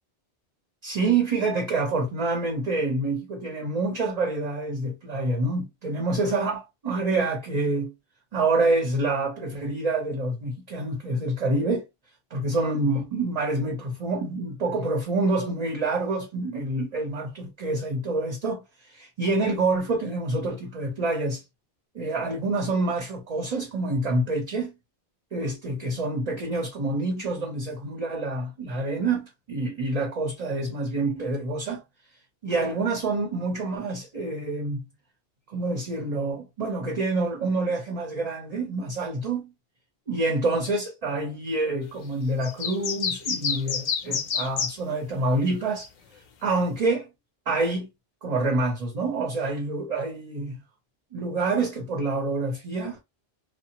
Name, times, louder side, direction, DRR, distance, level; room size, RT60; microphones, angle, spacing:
voice 1, 0.8-7.9 8.3-11.8 12.3-21.4 21.9-24.7 25.3-31.8 32.4-34.8 35.5-39.5 40.1-45.9 46.4-47.1 47.5-47.9 48.2-50.6 51.1-53.0, right 2 dB, 40° right, 0.7 m, -27 dB
sound 1, 42.4-44.7, left 6 dB, 55° left, 0.6 m, -28 dB
2.8 x 2.1 x 2.8 m
omnidirectional pair, 1.1 m